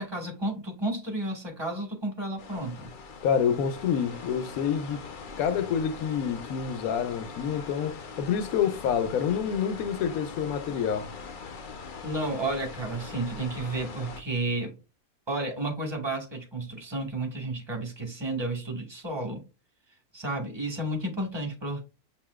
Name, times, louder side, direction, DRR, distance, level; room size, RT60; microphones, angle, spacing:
voice 1, 0.0-2.9 12.0-14.7 15.3-19.4 20.1-21.8, right 2 dB, 20° right, 1.2 m, -32 dB
sound 1, 2.4-14.2, left 5 dB, 85° left, 0.4 m, -42 dB
voice 2, 3.2-5.0 5.4-11.1, left 7 dB, 70° left, 1.1 m, -27 dB
6.9 x 2.8 x 2.3 m
omnidirectional pair, 1.7 m